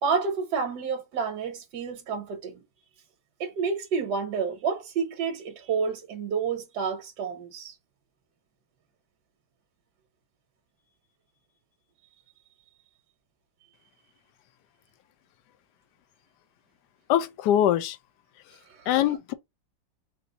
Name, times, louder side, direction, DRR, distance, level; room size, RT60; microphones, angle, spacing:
voice 1, 0.0-2.6 3.4-7.7 18.9-19.0, right 5 dB, 65° right, 1.6 m, -29 dB
voice 2, 17.1-18.0 18.9-19.3, left 11 dB, 70° left, 1.1 m, -23 dB
4.2 x 2.6 x 3.8 m
omnidirectional pair, 2.0 m